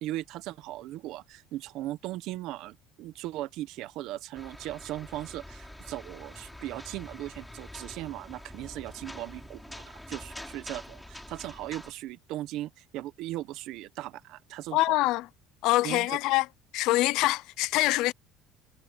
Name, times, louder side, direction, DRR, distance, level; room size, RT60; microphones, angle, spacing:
voice 1, 0.0-15.0 15.8-16.1, right 15 dB, 60° right, 1.3 m, -38 dB
sound 1, 4.3-11.9, left 1 dB, 5° left, 5.2 m, -45 dB
voice 2, 14.7-15.3 15.6-16.5 16.7-18.1, left 18 dB, 65° left, 0.6 m, -25 dB
cardioid pair, 155°, 0 cm